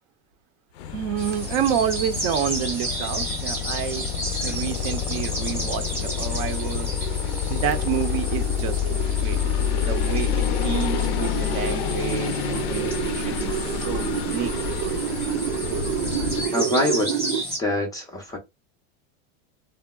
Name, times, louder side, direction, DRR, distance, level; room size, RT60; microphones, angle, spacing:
sound 1, 0.8-16.5, left 9 dB, 80° left, 0.5 m, -28 dB
voice 1, 0.9-4.1 4.4-6.9 7.5-9.0 9.2-14.5, right 9 dB, 55° right, 0.6 m, -29 dB
sound 2, 1.2-17.6, right 1 dB, 5° right, 0.8 m, -34 dB
sound 3, 3.2-17.4, right 10 dB, 90° right, 0.7 m, -31 dB
voice 2, 16.5-17.1 17.6-18.4, left 1 dB, 10° left, 0.4 m, -24 dB
3.6 x 2.0 x 2.2 m
supercardioid pair, 145°, 32 cm